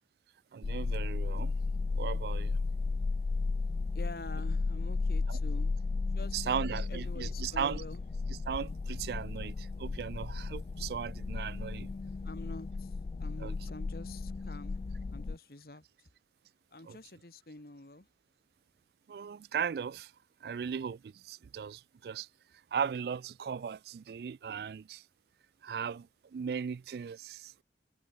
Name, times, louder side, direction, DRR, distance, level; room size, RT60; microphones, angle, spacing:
voice 1, 0.5-1.5 1.9-2.6 5.3-5.4 6.3-7.8 8.3-11.9 13.4-13.5 16.8-17.0 19.1-20.1 20.4-22.3 22.7-25.0 25.6-27.6, right 7 dB, 60° right, 0.3 m, -37 dB
sound 1, 0.6-15.4, left 3 dB, 35° left, 0.3 m, -34 dB
voice 2, 3.9-5.7 6.1-8.0 12.2-14.8 15.1-15.8 16.7-18.1, left 2 dB, 55° left, 1.8 m, -47 dB
head